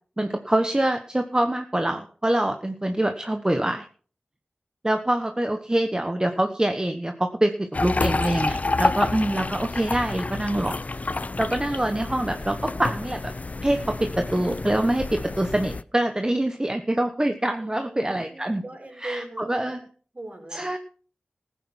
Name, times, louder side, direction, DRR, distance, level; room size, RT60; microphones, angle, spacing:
voice 1, 0.2-3.9 4.8-10.8 11.4-13.3 13.6-18.6 19.0-19.8 20.5-20.8, right 1 dB, 20° right, 7 dB, 1.2 m, -25 dB
sound 1, 7.7-15.8, left 3 dB, 45° left, 0.6 m, -29 dB
voice 2, 17.6-19.8 20.1-20.8, right 1 dB, 45° right, 1 dB, 6.1 m, -39 dB
15.0 x 9.3 x 6.1 m, 0.43 s
wide cardioid pair, 50°, 3 cm